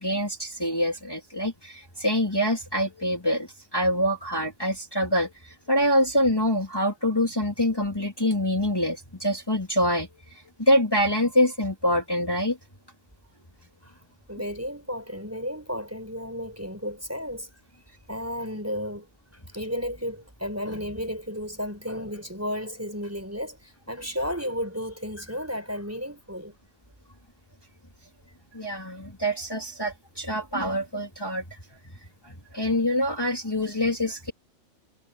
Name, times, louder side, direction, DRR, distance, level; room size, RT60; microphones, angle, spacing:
voice 1, 0.0-12.6 28.5-31.6 32.2-34.3, equal, 15° left, 3.6 m, -25 dB
voice 2, 14.3-17.5 18.1-19.1 19.5-26.5, equal, 10° right, 4.8 m, -33 dB
omnidirectional pair, 1.4 m